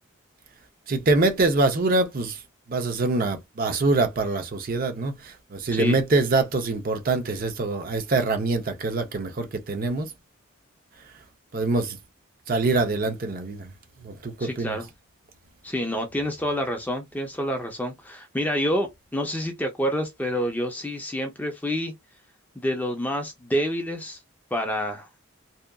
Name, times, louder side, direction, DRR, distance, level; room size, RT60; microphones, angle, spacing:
voice 1, 0.9-2.4 2.7-10.1 11.5-12.0 12.5-13.7 14.0-14.8, right 3 dB, 40° right, 0.5 m, -24 dB
voice 2, 14.4-14.9 15.6-21.9 22.6-24.2 24.5-25.1, equal, 10° left, 0.4 m, -28 dB
2.7 x 2.3 x 2.2 m
head